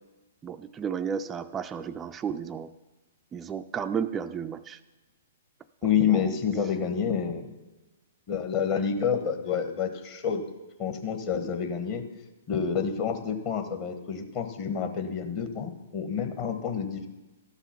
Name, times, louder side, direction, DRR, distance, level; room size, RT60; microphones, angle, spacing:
voice 1, 0.4-2.7 3.3-4.8 6.1-6.4, right 7 dB, 20° right, 8 dB, 0.3 m, -33 dB
voice 2, 5.8-7.5 8.3-10.4 10.8-12.0 12.5-17.1, left 7 dB, 35° left, 6 dB, 1.3 m, -28 dB
13.0 x 5.7 x 5.9 m, 1.1 s
figure-of-eight pair, 120°, 0 cm